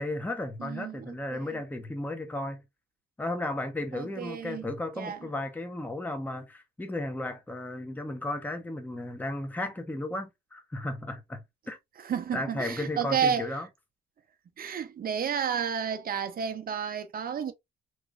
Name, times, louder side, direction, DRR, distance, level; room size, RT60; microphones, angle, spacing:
voice 1, 0.0-2.6 3.2-11.8 12.3-13.7, left 1 dB, 10° left, 0.8 m, -34 dB
voice 2, 0.6-1.6 3.9-4.6 5.0-5.2 12.0-13.5 14.6-17.5, right 7 dB, 50° right, 0.7 m, -31 dB
3.2 x 2.9 x 2.5 m
cardioid pair, 90°, 20 cm